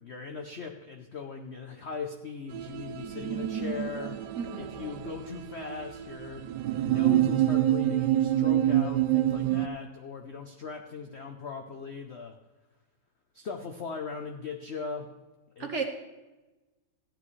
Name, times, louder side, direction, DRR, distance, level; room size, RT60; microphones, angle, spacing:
voice 1, 0.0-4.2 4.6-6.5 6.8-12.4 13.3-15.1 15.6-15.7, left 5 dB, 60° left, 4 dB, 0.6 m, -39 dB
sound 1, 2.5-9.7, right 13 dB, 75° right, 1.1 m, -27 dB
voice 2, 4.4-4.9 15.6-15.8, right 5 dB, 50° right, 4 dB, 1.0 m, -34 dB
14.5 x 9.6 x 3.2 m, 1.1 s
omnidirectional pair, 2.1 m